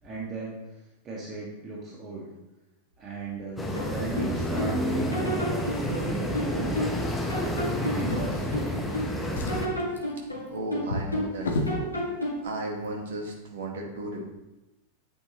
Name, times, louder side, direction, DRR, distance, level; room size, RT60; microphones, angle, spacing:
voice 1, 0.0-2.3 3.0-7.3 7.7-9.3, right 3 dB, 25° right, -5 dB, 1.9 m, -37 dB
sound 1, 3.6-9.7, equal, 10° left, 1.3 m, -30 dB
sound 2, 3.8-4.8 5.1-7.0 7.3-9.1 9.5-11.4 11.7-12.5, equal, 85° left, 2.2 m, -31 dB
Drawer open or close, 7.9-8.9 9.2-11.8 12.7-12.9 13.2-13.3, left 2 dB, 65° left, 1.3 m, -34 dB
voice 2, 10.5-12.2 12.4-14.2, right 1 dB, 60° right, 0 dB, 2.0 m, -35 dB
9.1 x 8.9 x 3.1 m, 0.99 s
figure-of-eight pair, 90°, 0 cm